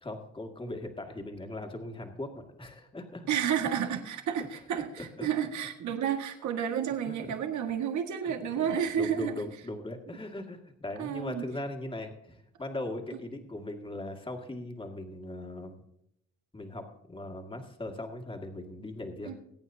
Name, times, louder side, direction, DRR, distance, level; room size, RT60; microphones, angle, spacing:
voice 1, 0.0-3.3 4.8-5.3 7.1-7.2 8.2-15.8 16.5-19.3, left 1 dB, 15° left, 3 dB, 2.1 m, -39 dB
voice 2, 3.3-9.3 11.0-11.5 19.3-19.4, right 8 dB, 75° right, 5 dB, 1.8 m, -31 dB
22.5 x 8.9 x 2.8 m, 0.77 s
cardioid pair, 90°, 30 cm